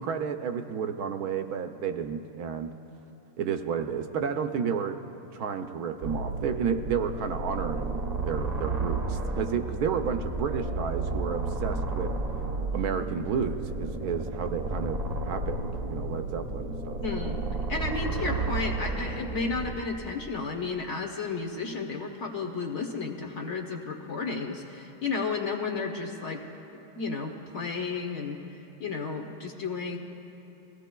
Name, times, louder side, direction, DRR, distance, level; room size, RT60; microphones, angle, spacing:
voice 1, 0.0-2.7 3.4-5.0 5.3-12.1 12.7-17.0, right 7 dB, 70° right, 7 dB, 1.0 m, -31 dB
sound 1, 6.0-19.7, right 2 dB, 35° right, 0.8 m, -32 dB
voice 2, 17.0-17.4 17.7-26.4 27.0-30.0, left 4 dB, 50° left, 3 dB, 1.0 m, -33 dB
21.5 x 16.5 x 2.3 m, 2.8 s
omnidirectional pair, 1.8 m